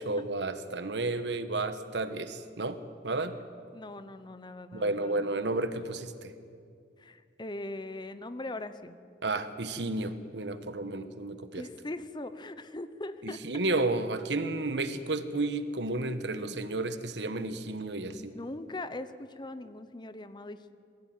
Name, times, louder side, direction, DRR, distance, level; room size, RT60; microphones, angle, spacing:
voice 1, 0.1-2.8 3.0-3.3 4.7-6.3 9.2-11.6 13.2-18.3, right 2 dB, 75° right, 11 dB, 1.3 m, -32 dB
voice 2, 3.7-5.2 7.0-9.0 11.5-13.4 16.4-16.6 18.1-20.7, left 2 dB, 25° left, 12 dB, 0.8 m, -41 dB
21.5 x 15.5 x 9.4 m, 2.3 s
head